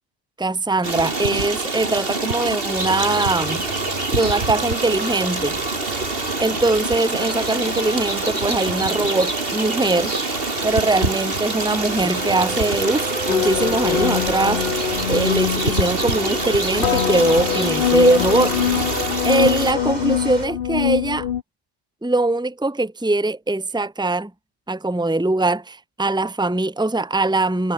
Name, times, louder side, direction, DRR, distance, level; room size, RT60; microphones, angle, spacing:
voice 1, 0.4-3.7 4.1-5.6 6.4-10.1 10.6-14.6 15.1-18.6 19.2-21.3 22.0-24.3 24.7-27.7, right 2 dB, 5° right, 1.6 m, -21 dB
Stream, 0.8-19.7, right 3 dB, 55° right, 2.8 m, -26 dB
sound 1, 2.8-20.5, right 1 dB, 35° right, 4.3 m, -31 dB
sound 2, 13.3-21.4, left 10 dB, 55° left, 0.8 m, -23 dB
omnidirectional pair, 1.2 m